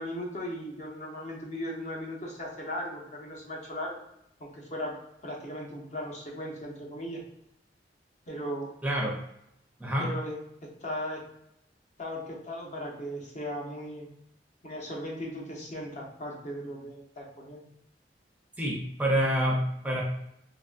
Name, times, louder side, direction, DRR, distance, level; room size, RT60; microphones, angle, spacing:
voice 1, 0.0-4.0 4.4-4.9 5.2-7.2 8.3-8.7 10.0-10.4 10.6-11.2 12.0-14.1 14.6-17.6, equal, 40° left, -1 dB, 0.8 m, -37 dB
voice 2, 8.8-9.2 9.8-10.1 18.6-20.0, equal, 10° right, -2 dB, 0.5 m, -27 dB
3.8 x 2.9 x 2.4 m, 0.79 s
head